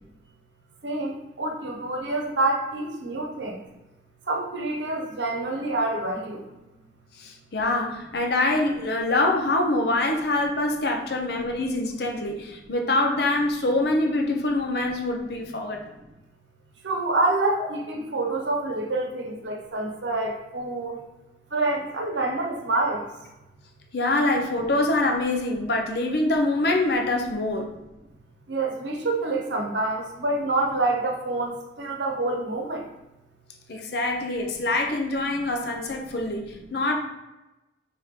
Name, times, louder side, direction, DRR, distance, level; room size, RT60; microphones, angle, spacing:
voice 1, 0.8-3.6 4.3-6.4 16.8-21.0 21.5-23.0 28.5-32.9, right 2 dB, 80° right, 1 dB, 0.9 m, -27 dB
voice 2, 7.2-15.8 23.9-27.7 33.7-37.0, left 2 dB, 60° left, 2 dB, 0.6 m, -25 dB
5.3 x 2.9 x 3.2 m, 1.0 s
head